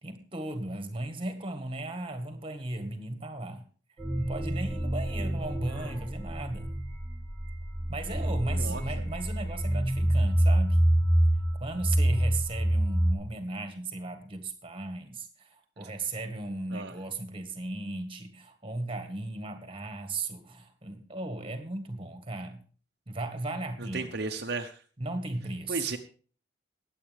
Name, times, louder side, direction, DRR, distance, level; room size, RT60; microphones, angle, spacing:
voice 1, 0.0-3.6 4.2-6.7 7.9-10.8 11.5-22.6 23.1-24.1 25.0-25.9, right 2 dB, 25° right, 8 dB, 1.6 m, -36 dB
sound 1, 4.0-13.1, right 1 dB, 5° left, 2.8 m, -27 dB
voice 2, 23.8-24.8 25.7-26.0, right 3 dB, 55° right, 4 dB, 0.9 m, -34 dB
22.0 x 8.3 x 3.5 m, 0.40 s
head